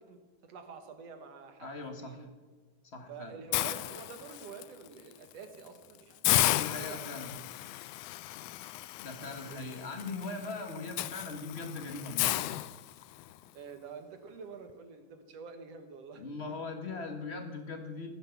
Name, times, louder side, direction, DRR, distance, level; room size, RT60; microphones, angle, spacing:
voice 1, 0.0-1.7 2.0-2.3 3.1-7.2 9.2-9.7 13.5-16.6, right 5 dB, 60° right, 6 dB, 2.2 m, -48 dB
voice 2, 1.6-2.2 2.9-3.4 6.5-7.3 9.0-12.4 16.2-18.1, left 3 dB, 35° left, 5 dB, 1.0 m, -40 dB
Hiss, 3.5-4.6 5.1-5.3 5.7-5.8 6.2-13.3, left 16 dB, 80° left, 2.0 m, -33 dB
15.5 x 9.5 x 7.1 m, 1.3 s
omnidirectional pair, 3.4 m